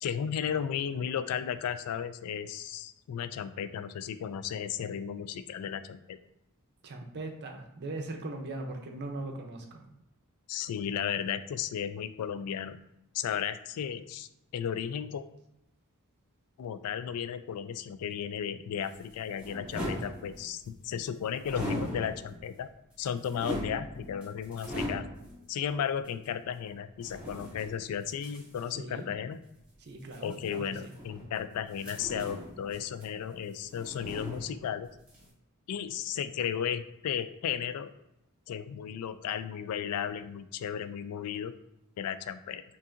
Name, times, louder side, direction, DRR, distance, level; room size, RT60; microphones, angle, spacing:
voice 1, 0.0-6.2 10.5-12.8 13.1-15.2 16.6-22.7 23.0-25.1 25.5-29.4 30.2-34.9 35.7-37.9 38.5-41.5 42.0-42.6, left 8 dB, 85° left, 15 dB, 0.3 m, -34 dB
voice 2, 6.8-9.8 28.7-29.1 29.8-30.9, right 2 dB, 50° right, 3 dB, 0.6 m, -40 dB
sound 1, 18.8-20.7 21.4-22.5 22.9-25.4 26.0-26.1 27.0-28.7 30.0-31.4 31.8-33.4 33.6-34.8 35.1-35.3, equal, 5° right, 1.1 m, -39 dB
5.4 x 2.6 x 2.5 m, 0.86 s
head